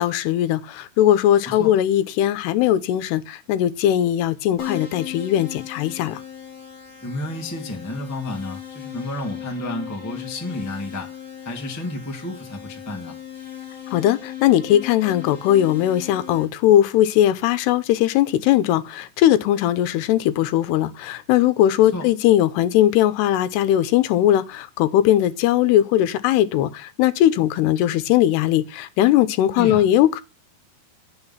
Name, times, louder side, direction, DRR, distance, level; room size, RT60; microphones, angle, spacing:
voice 1, 0.0-6.2 13.9-30.2, left 12 dB, 85° left, 2.8 m, -19 dB
Keyboard (musical), 4.6-16.4, left 10 dB, 45° left, 4.5 m, -37 dB
voice 2, 7.0-11.1 11.4-13.2 21.9-22.1 29.5-29.9, left 1 dB, 10° left, 0.8 m, -31 dB
9.9 x 6.6 x 5.6 m
omnidirectional pair, 4.7 m